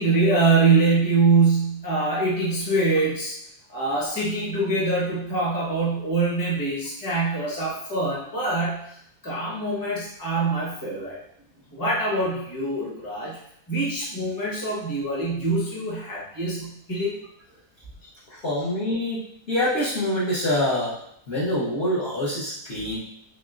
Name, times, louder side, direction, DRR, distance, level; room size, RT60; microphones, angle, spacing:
voice 1, 0.0-3.3 3.7-8.8 9.2-11.2 11.7-13.4 13.7-17.2 22.8-22.9, right 3 dB, 15° left, -6 dB, 0.8 m, -24 dB
voice 2, 18.3-19.2 19.5-21.0 21.3-23.0, left 1 dB, 50° left, -8 dB, 0.9 m, -25 dB
3.8 x 3.5 x 2.4 m, 0.74 s
omnidirectional pair, 1.6 m